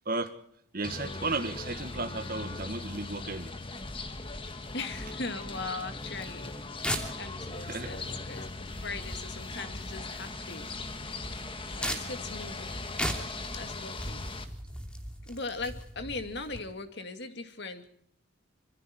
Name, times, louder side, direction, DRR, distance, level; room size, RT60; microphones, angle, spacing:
voice 1, 0.7-3.5 7.7-8.0, right 3 dB, 45° right, 7 dB, 1.8 m, -34 dB
sound 1, 0.8-14.5, left 3 dB, 25° left, 1.6 m, -39 dB
voice 2, 4.5-6.5 6.8-8.5 8.8-10.7 11.7-12.8 13.5-14.3 15.2-17.9, left 3 dB, 55° left, 7 dB, 2.3 m, -39 dB
sound 2, 6.1-16.6, equal, 5° left, 2.9 m, -39 dB
26.5 x 23.0 x 4.5 m, 0.65 s
head